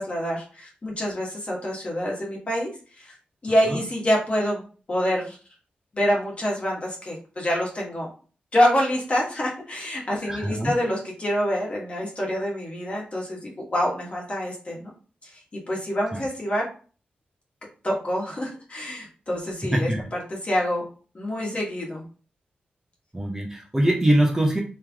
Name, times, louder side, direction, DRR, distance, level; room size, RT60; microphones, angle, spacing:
voice 1, 0.0-2.7 3.0-3.1 3.4-5.4 5.9-8.1 8.5-14.9 15.2-15.3 15.7-16.7 17.8-19.9 20.4-20.9 21.1-22.0, equal, 35° left, -2 dB, 1.5 m, -26 dB
voice 2, 10.2-10.7 16.1-16.2 19.6-20.0 23.1-24.6, right 1 dB, 15° right, 0 dB, 0.9 m, -23 dB
3.4 x 3.2 x 3.5 m, 0.38 s
wide cardioid pair, 85°, 3 cm